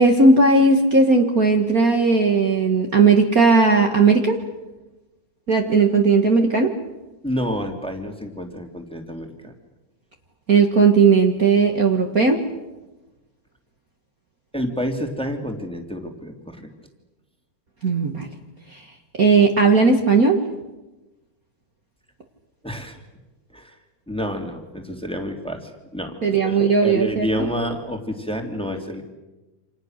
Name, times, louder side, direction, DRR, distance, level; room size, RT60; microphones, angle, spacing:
voice 1, 0.0-4.4 5.5-6.7 10.5-12.4 17.8-18.3 18.7-18.8 19.2-20.4 26.2-27.5, right 4 dB, 65° right, 2 dB, 0.8 m, -16 dB
voice 2, 7.2-9.5 14.5-16.7 22.6-23.0 23.5-23.7 24.1-29.0, equal, ahead, 3 dB, 2.0 m, -29 dB
29.0 x 27.5 x 6.6 m, 1.1 s
omnidirectional pair, 4.4 m